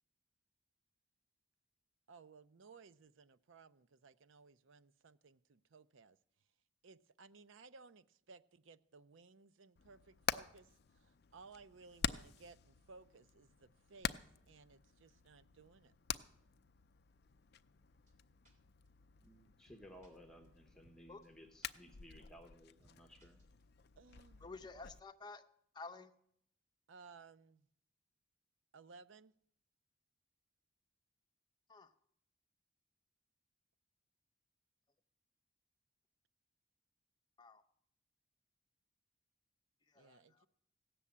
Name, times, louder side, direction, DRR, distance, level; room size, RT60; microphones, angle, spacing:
voice 1, 2.1-6.2 6.8-15.9 24.0-24.5 26.9-27.7 28.7-29.3 40.0-40.5, right 4 dB, 75° right, 0.5 m, -60 dB
Hammer, 9.8-25.0, left 7 dB, 50° left, 0.5 m, -47 dB
sound 1, 18.1-18.2 18.5-18.6 18.9-19.0 19.2-19.3 19.6-20.1 20.4-20.5 20.8-21.0 21.2-21.3 21.6-21.7 22.0-22.1 22.4-22.5 22.8-22.9 23.2-23.8, right 1 dB, 40° right, 3.2 m, -70 dB
voice 2, 19.2-23.4, equal, 5° left, 1.0 m, -59 dB
voice 3, 24.4-25.4 25.7-26.1 31.7-31.9 37.4-37.6 39.9-40.5, left 3 dB, 20° left, 0.7 m, -51 dB
16.5 x 6.9 x 8.6 m
head